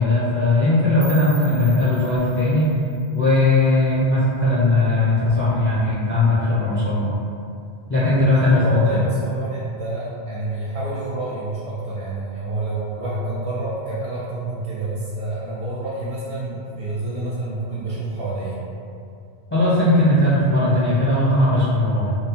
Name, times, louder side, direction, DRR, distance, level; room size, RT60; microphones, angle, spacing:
voice 1, 0.0-2.7 3.1-7.1 7.9-9.0 19.5-22.1, left 2 dB, 20° left, -11 dB, 0.3 m, -18 dB
sound 1, 1.0-3.9, right 3 dB, 60° right, 0.4 m, -42 dB
voice 2, 8.2-18.6, right 2 dB, 75° right, -9 dB, 0.9 m, -28 dB
2.7 x 2.0 x 2.8 m, 2.4 s
omnidirectional pair, 1.2 m